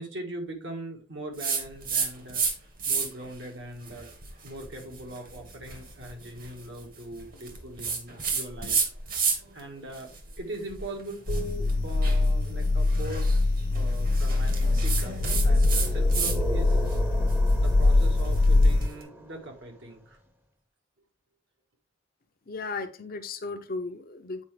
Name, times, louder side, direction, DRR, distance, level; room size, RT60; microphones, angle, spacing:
voice 1, 0.0-2.4 2.9-4.1 4.4-8.8 9.1-13.3 13.7-16.9 17.6-20.2, right 1 dB, 65° right, 2 dB, 1.6 m, -40 dB
sound 1, 1.4-2.5 2.8-3.3 3.8-9.6 9.9-16.4 16.7-18.9, right 5 dB, 45° right, 1.5 m, -32 dB
sound 2, 11.3-18.9, left 2 dB, 80° left, 0.6 m, -23 dB
sound 3, 14.9-19.9, right 2 dB, 10° right, 0.8 m, -40 dB
voice 2, 22.5-24.4, left 3 dB, 45° left, 7 dB, 0.7 m, -35 dB
8.3 x 4.5 x 3.2 m, 0.35 s
head